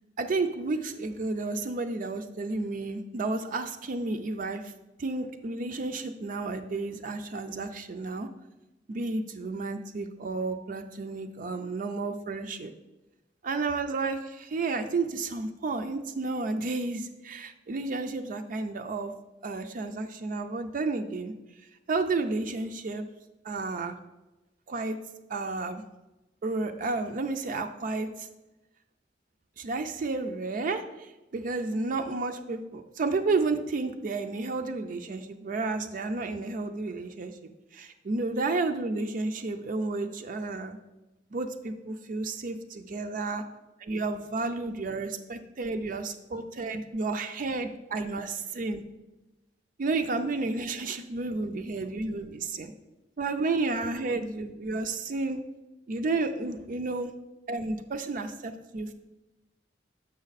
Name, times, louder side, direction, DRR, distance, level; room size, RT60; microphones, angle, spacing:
voice 1, 0.2-4.7 5.0-8.3 8.9-12.7 13.4-19.1 19.4-21.3 21.9-23.1 23.4-23.9 24.7-25.0 25.3-25.8 26.4-28.3 29.6-40.8 41.3-43.4 43.8-48.8 49.8-52.7 53.2-55.4 55.9-57.1 57.5-58.9, right 3 dB, 50° right, 6 dB, 0.4 m, -31 dB
7.0 x 5.2 x 4.0 m, 1.0 s
head